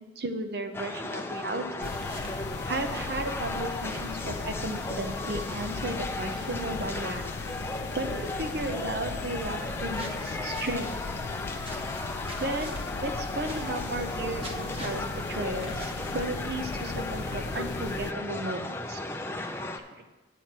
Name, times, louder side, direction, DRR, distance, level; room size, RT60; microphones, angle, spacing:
voice 1, 0.2-1.9 2.6-7.3 7.9-10.9 12.4-19.0 20.0-20.1, right 1 dB, 60° right, 7 dB, 0.8 m, -34 dB
sound 1, 0.7-19.8, left 2 dB, 15° left, 0.5 m, -36 dB
sound 2, 1.8-18.1, left 4 dB, 70° left, 0.4 m, -38 dB
sound 3, 1.8-2.4 9.9-10.9 11.6-12.9 13.4-14.1 14.4-15.1 15.6-16.6, equal, 30° right, 1.1 m, -44 dB
9.2 x 7.8 x 4.2 m, 1.2 s
head